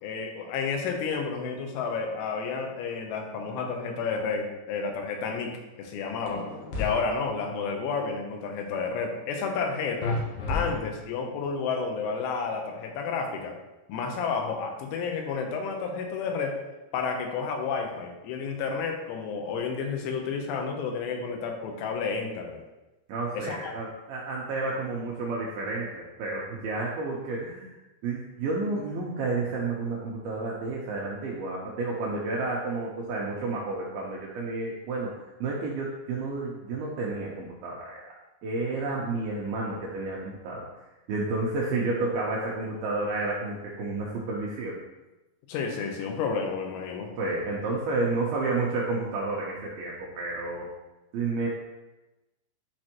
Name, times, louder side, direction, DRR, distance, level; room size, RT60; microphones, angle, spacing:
voice 1, 0.0-6.5 6.8-10.2 10.5-13.6 13.9-16.6 16.9-22.6 23.3-23.7 45.5-47.1, left 5 dB, 90° left, 3 dB, 3.4 m, -31 dB
sound 1, 6.3-6.9 10.0-11.2, left 3 dB, 70° left, 2.1 m, -31 dB
voice 2, 23.1-27.8 28.0-35.1 35.4-38.0 38.4-40.7 41.1-44.8 47.2-50.7 51.1-51.5, right 3 dB, 80° right, -3 dB, 2.2 m, -31 dB
11.0 x 4.3 x 3.0 m, 1.0 s
omnidirectional pair, 5.4 m